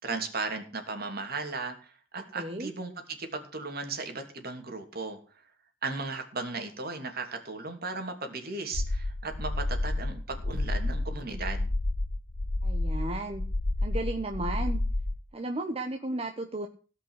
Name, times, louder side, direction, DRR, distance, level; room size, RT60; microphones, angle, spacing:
voice 1, 0.0-5.2 5.8-11.7, right 3 dB, 55° right, 5 dB, 3.0 m, -36 dB
voice 2, 2.2-2.7 12.6-13.4 13.8-14.8 15.3-16.7, right 2 dB, 30° right, 4 dB, 1.2 m, -34 dB
sound 1, 8.7-15.2, left 2 dB, 65° left, 1.2 m, -30 dB
17.5 x 5.8 x 8.1 m, 0.38 s
head